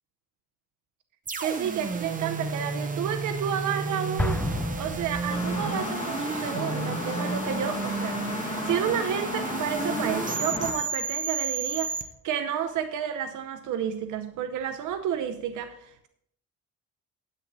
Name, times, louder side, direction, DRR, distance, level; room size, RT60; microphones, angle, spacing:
sound 1, 1.3-12.0, right 4 dB, 25° right, 0.8 m, -32 dB
voice 1, 1.4-4.4 4.8-12.0 12.2-16.1, right 9 dB, 80° right, 9 dB, 0.7 m, -31 dB
Explosion, 4.2-5.9, left 1 dB, 5° left, 0.6 m, -31 dB
sound 2, 5.3-10.7, left 3 dB, 20° left, 1.9 m, -33 dB
9.9 x 8.6 x 4.0 m, 0.73 s
cardioid pair, 145°, 30 cm